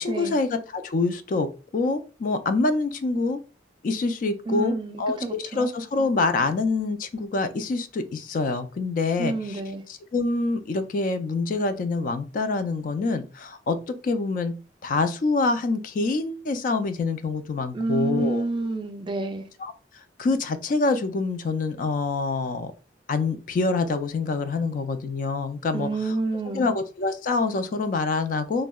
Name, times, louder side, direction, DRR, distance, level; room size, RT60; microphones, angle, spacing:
voice 1, 0.0-1.5 1.7-3.4 3.8-9.6 9.9-14.5 14.8-18.4 19.6-19.7 20.2-22.7 23.1-26.1 26.5-28.7, left 3 dB, 50° left, 0.3 m, -26 dB
voice 2, 4.5-5.7 9.2-9.8 17.7-19.5 25.7-26.8, right 2 dB, 25° right, 0.3 m, -28 dB
3.5 x 2.1 x 2.2 m
head